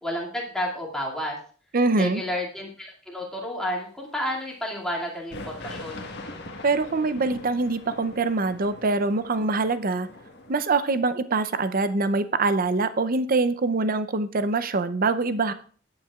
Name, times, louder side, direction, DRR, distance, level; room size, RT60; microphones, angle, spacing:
voice 1, 0.0-1.4 2.0-6.1, left 1 dB, 5° left, -3 dB, 2.4 m, -31 dB
voice 2, 1.7-2.2 6.6-10.1 10.5-15.5, right 3 dB, 50° right, 12 dB, 0.6 m, -24 dB
sound 1, 5.3-10.6, left 2 dB, 60° left, 1.4 m, -41 dB
21.5 x 8.7 x 2.4 m, 0.43 s
head